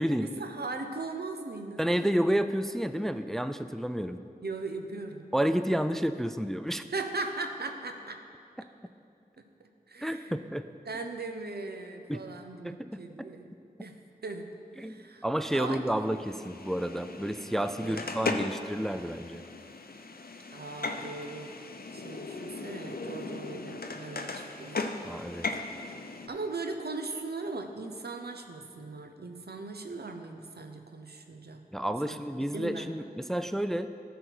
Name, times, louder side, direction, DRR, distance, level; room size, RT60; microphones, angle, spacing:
voice 1, 0.2-2.1 4.4-5.3 6.9-8.2 9.4-9.5 9.9-10.4 10.9-15.2 15.5-15.8 17.8-18.0 20.5-21.5 21.9-24.9 26.3-31.6 32.0-32.2 32.5-33.1, right 3 dB, 85° right, 5 dB, 0.7 m, -39 dB
voice 2, 1.8-4.2 5.3-6.8 10.0-10.7 12.1-12.2 12.6-13.3 14.8-19.4 25.0-25.5 31.7-33.9, equal, ahead, 10 dB, 0.3 m, -30 dB
sound 1, 16.0-26.3, left 3 dB, 70° left, 0.6 m, -38 dB
12.5 x 5.2 x 4.7 m, 2.4 s
wide cardioid pair, 40°, 16 cm